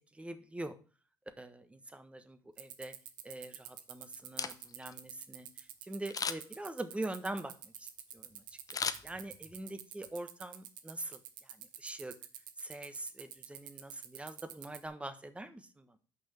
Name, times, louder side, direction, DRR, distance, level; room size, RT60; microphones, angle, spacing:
voice 1, 0.1-0.7 1.4-2.9 3.2-8.4 9.0-12.1 12.6-16.0, right 1 dB, 10° right, 10 dB, 1.3 m, -44 dB
sound 1, 2.6-14.9, right 11 dB, 80° right, 0.8 m, -47 dB
Camera, 4.2-4.9 6.1-6.6 8.7-9.6 10.0-10.1, left 6 dB, 35° left, 0.8 m, -37 dB
6.2 x 5.5 x 7.0 m, 0.38 s
hypercardioid pair, 60°, 11 cm